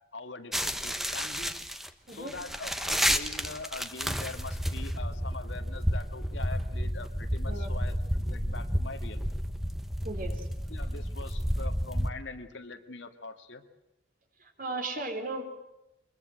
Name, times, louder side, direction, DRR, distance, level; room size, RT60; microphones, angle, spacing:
voice 1, 0.1-1.5 2.1-9.4 10.7-13.6, left 3 dB, 90° left, 7 dB, 2.1 m, -43 dB
sound 1, 0.5-12.1, equal, ahead, 1.2 m, -31 dB
voice 2, 10.0-10.5 14.4-15.4, right 2 dB, 50° right, 6 dB, 3.6 m, -36 dB
23.5 x 21.5 x 7.9 m, 0.91 s
head